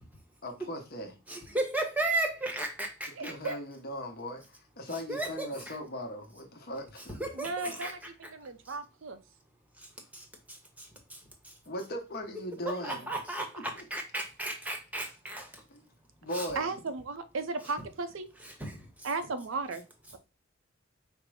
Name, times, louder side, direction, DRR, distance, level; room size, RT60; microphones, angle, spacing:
voice 1, 0.4-1.1 3.2-7.2 11.7-13.1 15.7-15.8 16.2-16.7, equal, 50° left, 0.9 m, -38 dB
voice 2, 1.3-3.6 4.9-5.8 7.0-7.9 8.2-8.3 8.7-8.8 9.8-9.9 10.1-11.5 12.5-15.6 16.3-16.5 18.4-19.1, right 2 dB, 10° right, 0.8 m, -36 dB
voice 3, 3.2-3.6 7.3-9.2 12.7-13.0 16.6-18.3 19.0-19.8, right 3 dB, 75° right, 0.6 m, -36 dB
5.1 x 2.0 x 4.7 m
head